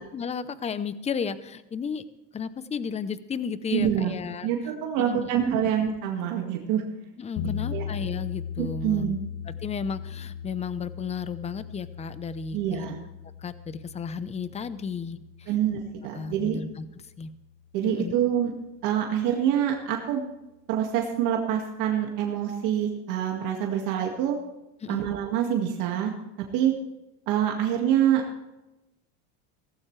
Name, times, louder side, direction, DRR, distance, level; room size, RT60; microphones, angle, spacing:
voice 1, 0.0-2.0 2.3-4.5 5.0-5.3 7.2-9.2 9.5-12.9 13.4-15.5 16.1-16.8 17.2-17.3 17.9-18.1 24.8-25.1, left 6 dB, 20° left, 14 dB, 0.7 m, -33 dB
voice 2, 3.7-4.1 4.4-6.8 7.7-7.8 8.6-9.2 12.5-13.0 15.5-16.6 17.7-18.5 18.8-20.2 20.7-24.4 24.9-26.1 26.5-26.7 27.3-28.2, right 9 dB, 65° right, 1 dB, 2.1 m, -26 dB
sound 1, 7.4-17.4, left 8 dB, 70° left, 0.9 m, -38 dB
17.0 x 15.0 x 3.3 m, 0.95 s
supercardioid pair, 125°, 34 cm